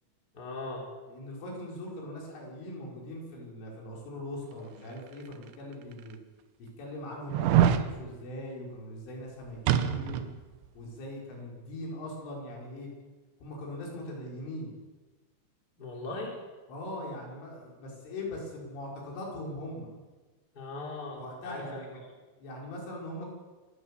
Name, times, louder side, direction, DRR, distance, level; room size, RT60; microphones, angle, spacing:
voice 1, 0.3-0.9 15.8-16.3 20.5-21.8, left 2 dB, 20° left, -1 dB, 3.9 m, -39 dB
voice 2, 1.1-6.2 6.6-10.3 10.8-12.9 13.4-14.7 16.7-19.9 21.1-22.0 22.4-23.3, left 1 dB, 80° left, -2 dB, 7.6 m, -41 dB
sound 1, 5.3-5.4 6.1-6.2 7.3-7.9 9.7-10.3 10.6-10.7, right 10 dB, 80° right, 3.3 m, -24 dB
26.5 x 12.5 x 8.5 m, 1.3 s
omnidirectional pair, 5.5 m